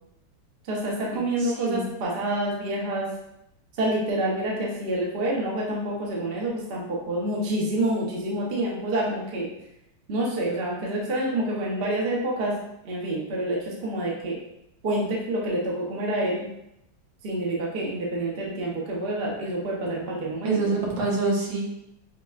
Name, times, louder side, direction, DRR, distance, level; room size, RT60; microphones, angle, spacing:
voice 1, 0.7-3.1 3.8-9.5 10.1-12.5 12.8-14.4 14.8-16.5 17.2-20.6, right 1 dB, 55° right, -3 dB, 0.6 m, -27 dB
voice 2, 1.4-1.9 20.4-21.7, right 3 dB, 80° right, -2 dB, 1.6 m, -26 dB
5.7 x 2.1 x 2.3 m, 0.83 s
omnidirectional pair, 2.0 m